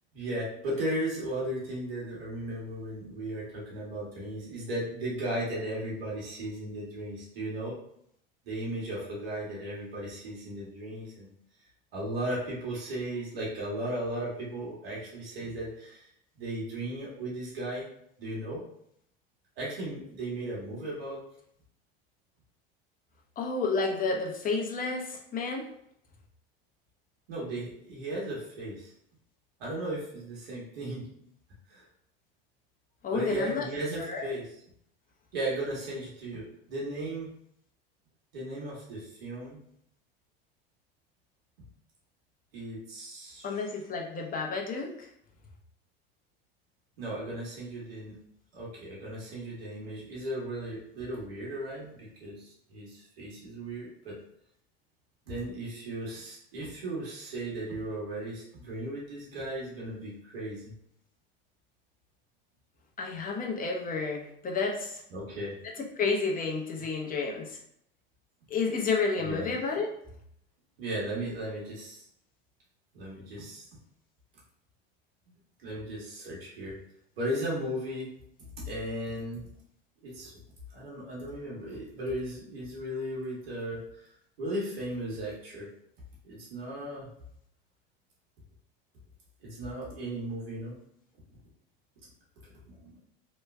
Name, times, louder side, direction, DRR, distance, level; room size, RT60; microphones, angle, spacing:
voice 1, 0.1-7.7 8.4-11.3 11.9-16.1 16.4-17.9 18.2-18.6 19.6-21.2 27.3-28.9 29.6-31.1 31.7-31.8 33.1-34.6 35.3-37.3 38.3-39.6 42.5-43.6 47.0-48.1 48.5-54.2 55.3-60.7 65.1-65.6 69.2-69.5 70.8-72.0 72.9-73.7 75.6-76.8 77.2-78.1 78.7-79.5 80.0-80.3 80.7-84.1 84.4-85.7 86.2-87.1 89.4-90.8 92.6-93.0, right 1 dB, 80° right, -5 dB, 1.2 m, -36 dB
voice 2, 23.4-25.7 33.0-33.7 34.0-34.2 43.4-44.9 63.0-65.0 66.0-67.6 68.5-69.9, left 4 dB, 30° left, 0 dB, 0.8 m, -30 dB
3.1 x 2.2 x 3.3 m, 0.71 s
hypercardioid pair, 85°, 29 cm